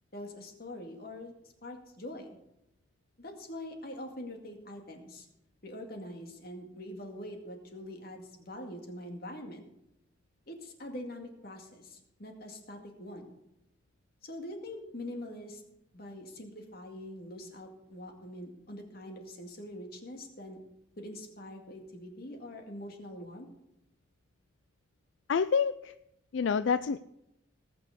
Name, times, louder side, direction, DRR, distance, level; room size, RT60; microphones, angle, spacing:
voice 1, 0.1-1.3 1.6-2.4 3.2-5.3 5.6-9.7 10.5-13.3 14.2-15.6 15.9-20.6 21.0-23.5, left 1 dB, 50° left, 3 dB, 2.2 m, -44 dB
voice 2, 25.3-25.9 26.3-27.0, left 6 dB, 75° left, 14 dB, 0.4 m, -27 dB
18.5 x 6.3 x 6.7 m, 0.84 s
head